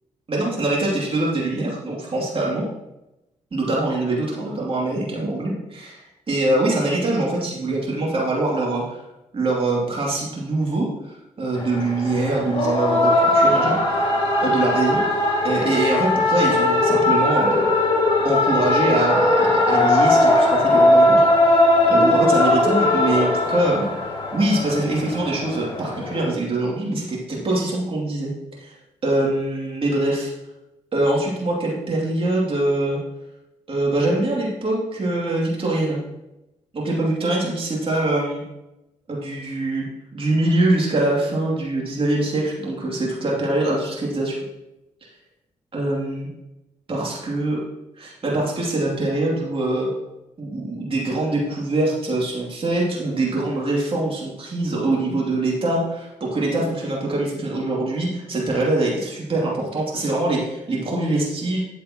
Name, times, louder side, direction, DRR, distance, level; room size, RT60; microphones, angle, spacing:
voice 1, 0.3-2.7 3.5-9.0 9.3-13.7 14.4-15.0 15.4-17.7 18.2-21.5 21.9-23.9 24.3-28.3 28.6-28.8 29.0-30.3 30.9-33.0 33.7-36.0 36.7-38.4 39.1-44.4 45.7-46.3 46.9-47.6 48.0-49.9 50.4-61.6, right 2 dB, 40° right, -3 dB, 2.7 m, -23 dB
sound 1, 11.5-26.2, left 1 dB, 40° left, 2.7 m, -19 dB
8.6 x 7.3 x 3.0 m, 0.95 s
supercardioid pair, 55°, 14 cm